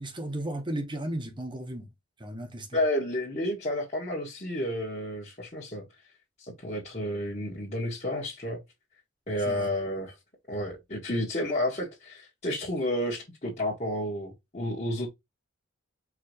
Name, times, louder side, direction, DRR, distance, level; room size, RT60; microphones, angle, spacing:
voice 1, 0.0-1.9 2.2-2.8 9.5-9.7, right 1 dB, 25° right, 1.1 m, -35 dB
voice 2, 2.7-5.8 6.4-8.6 9.3-10.1 10.5-15.1, left 1 dB, 35° left, 1.6 m, -31 dB
4.8 x 3.1 x 3.0 m
head